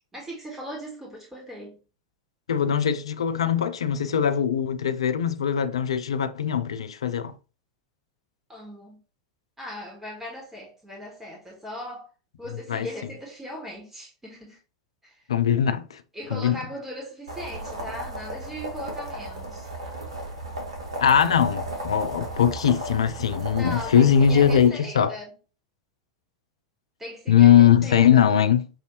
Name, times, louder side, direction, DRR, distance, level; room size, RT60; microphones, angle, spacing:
voice 1, 0.1-1.8 8.5-9.0 9.6-12.1 12.4-14.6 15.0-15.2 16.1-19.7 23.6-25.3 27.0-28.4, equal, 10° right, 1.5 m, -38 dB
voice 2, 2.5-7.3 12.7-12.9 15.3-16.0 16.3-16.6 21.0-25.1 27.3-28.6, left 9 dB, 70° left, 0.5 m, -20 dB
sound 1, 17.3-24.7, right 1 dB, 70° right, 1.4 m, -35 dB
6.1 x 2.7 x 3.0 m
figure-of-eight pair, 85°, 3 cm